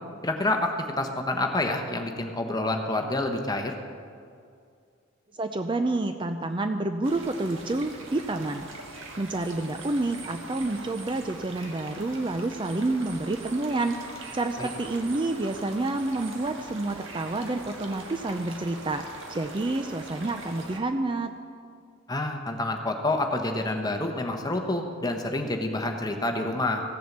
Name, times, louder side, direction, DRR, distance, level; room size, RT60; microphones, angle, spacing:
voice 1, 0.2-3.7 14.6-14.7 22.1-26.8, left 2 dB, 20° left, 3 dB, 1.1 m, -28 dB
voice 2, 5.4-8.7 9.2-14.0 14.3-21.3, right 2 dB, 25° right, 7 dB, 0.4 m, -29 dB
sound 1, 7.0-20.8, right 2 dB, 70° right, 1.6 m, -42 dB
15.5 x 7.3 x 7.3 m, 2.3 s
head